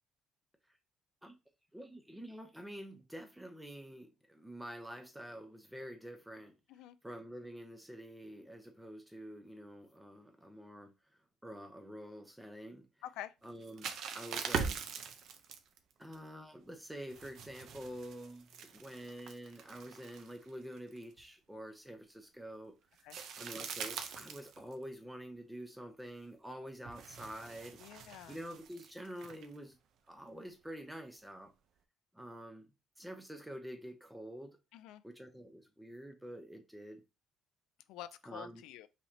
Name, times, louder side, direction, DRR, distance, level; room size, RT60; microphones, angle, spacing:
voice 1, 1.7-6.6 7.0-10.9 11.4-12.9 13.4-14.9 16.0-22.8 23.4-27.8 28.3-29.8 30.1-31.5 32.1-32.7 33.0-34.6 35.0-37.0 38.2-38.7, equal, 5° right, 0.8 m, -47 dB
sound 1, 13.4-16.2 17.1-20.5 20.8-21.2 23.0-24.9 26.9-29.6, right 6 dB, 60° right, 0.6 m, -42 dB
voice 2, 27.8-28.4 34.7-35.0 37.9-38.9, left 13 dB, 85° left, 0.4 m, -47 dB
5.5 x 3.1 x 2.8 m
cardioid pair, 140°, 0 cm